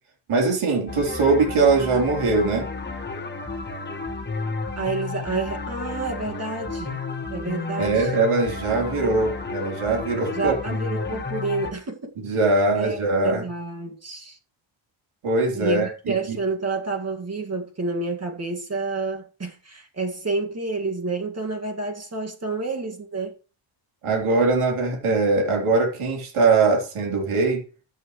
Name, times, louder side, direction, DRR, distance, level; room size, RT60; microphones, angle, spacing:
voice 1, 0.3-2.7 7.8-10.6 12.2-13.4 15.2-16.4 24.0-27.6, right 3 dB, 80° right, 3.8 m, -21 dB
sound 1, 0.9-11.7, left 4 dB, 20° left, 1.6 m, -32 dB
voice 2, 4.8-7.0 7.3-8.1 10.3-12.1 12.7-14.4 15.5-23.3, right 3 dB, 30° right, 2.1 m, -29 dB
14.0 x 8.1 x 3.2 m
cardioid pair, 110°, 49 cm